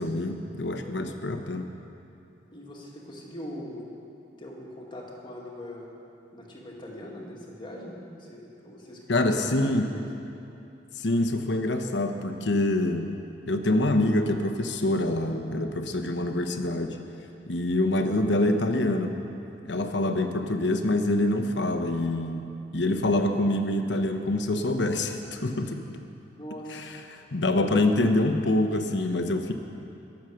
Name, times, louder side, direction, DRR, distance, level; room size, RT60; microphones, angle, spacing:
voice 1, 0.0-1.7 9.1-9.9 11.0-13.1 13.5-17.0 17.5-19.1 19.6-25.8 26.7-29.5, left 1 dB, 75° left, 6 dB, 1.0 m, -26 dB
voice 2, 2.5-3.9 4.4-5.9 6.3-10.0 26.4-26.8, equal, 25° left, -3 dB, 2.2 m, -41 dB
22.0 x 7.3 x 6.4 m, 2.7 s
head